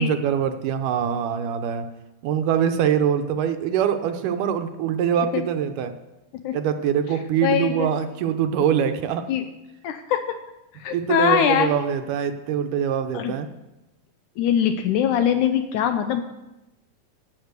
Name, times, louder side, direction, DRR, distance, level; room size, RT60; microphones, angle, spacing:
voice 1, 0.0-1.9 2.2-5.9 6.5-9.3 10.9-13.5, right 8 dB, 75° right, 7 dB, 2.2 m, -23 dB
voice 2, 7.4-7.9 9.3-9.4 9.8-10.4 10.8-11.7 13.1-13.3 14.4-16.2, left 9 dB, 75° left, 8 dB, 1.9 m, -22 dB
11.5 x 6.4 x 8.2 m, 0.98 s
omnidirectional pair, 4.0 m